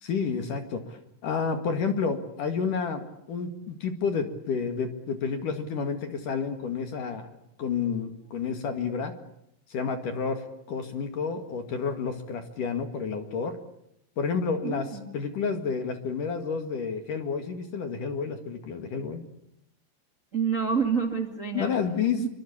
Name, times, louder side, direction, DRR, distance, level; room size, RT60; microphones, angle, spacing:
voice 1, 0.0-3.0 3.3-7.3 7.6-9.1 9.7-13.6 14.2-19.2 21.5-22.3, left 5 dB, 55° left, 7 dB, 2.7 m, -30 dB
voice 2, 14.6-15.1 20.3-21.7 22.2-22.3, right 6 dB, 55° right, 5 dB, 0.8 m, -28 dB
27.0 x 24.0 x 8.6 m, 0.79 s
omnidirectional pair, 5.9 m